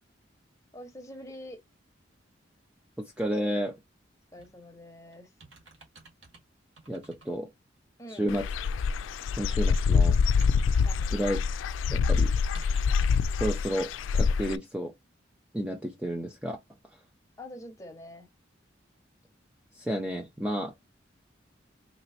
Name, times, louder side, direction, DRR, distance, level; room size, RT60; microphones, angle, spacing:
voice 1, 0.7-1.6 4.3-5.3 8.0-8.3 10.8-11.3 17.4-18.3, left 1 dB, 15° left, 1.1 m, -45 dB
voice 2, 3.2-3.8 6.9-7.5 8.1-8.5 9.4-10.2 11.1-11.4 11.9-12.3 13.4-14.9 15.5-16.6 19.7-20.7, equal, 5° right, 0.6 m, -31 dB
sound 1, 4.4-4.6 5.1-6.4 6.8-7.3 7.8-7.9 9.3-11.2 11.5-13.3 13.9-14.2 14.5-14.6, right 3 dB, 80° right, 1.9 m, -54 dB
Dog / Bird, 8.3-14.6, left 5 dB, 90° left, 0.3 m, -25 dB
4.3 x 3.0 x 2.8 m
head